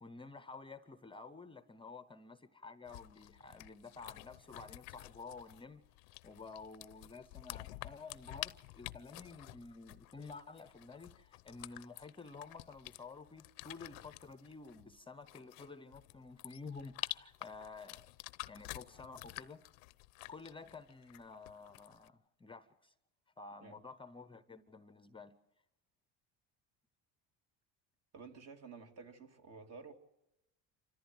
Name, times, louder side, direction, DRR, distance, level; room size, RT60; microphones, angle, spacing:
voice 1, 0.0-5.8 6.2-18.1 18.5-19.7 20.3-22.9 23.4-25.3, left 4 dB, 15° left, 0.7 m, -51 dB
sound 1, 2.9-22.1, left 22 dB, 80° left, 0.7 m, -50 dB
voice 2, 28.1-29.9, right 4 dB, 45° right, 2.5 m, -52 dB
27.5 x 14.5 x 7.7 m
cardioid pair, 120°, 35 cm